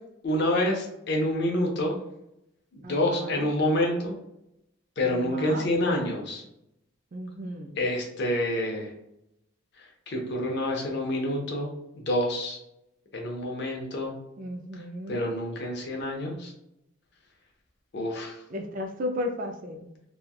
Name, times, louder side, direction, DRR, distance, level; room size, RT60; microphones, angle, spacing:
voice 1, 0.2-2.0 2.7-4.2 5.0-6.4 7.8-8.9 10.1-11.7 12.1-12.6 13.1-14.1 15.1-16.5 17.9-18.4, left 1 dB, 50° left, 0 dB, 0.6 m, -27 dB
voice 2, 2.8-3.5 5.0-5.7 7.1-7.7 14.4-15.2 18.5-19.9, left 1 dB, 40° right, 4 dB, 0.3 m, -35 dB
3.1 x 2.2 x 2.3 m, 0.83 s
head